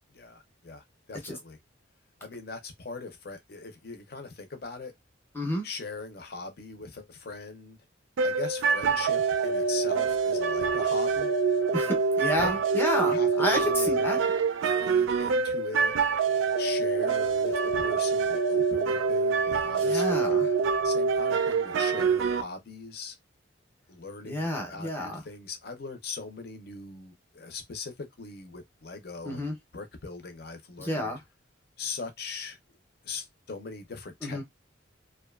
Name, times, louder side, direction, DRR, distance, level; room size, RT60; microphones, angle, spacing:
voice 1, 0.1-1.6 2.2-4.9 5.6-7.8 8.2-11.3 12.3-12.5 13.0-14.1 14.6-15.9 16.6-20.5 20.8-23.2 23.9-31.1 31.8-32.6 33.0-34.4, left 4 dB, 50° left, 0.6 m, -40 dB
sound 1, 8.2-22.4, right 5 dB, 80° right, 0.4 m, -25 dB
voice 2, 11.7-14.2 19.8-20.5 24.2-25.2 29.2-29.5 30.8-31.2 34.2-34.4, equal, 10° left, 0.6 m, -30 dB
2.6 x 2.2 x 2.3 m
head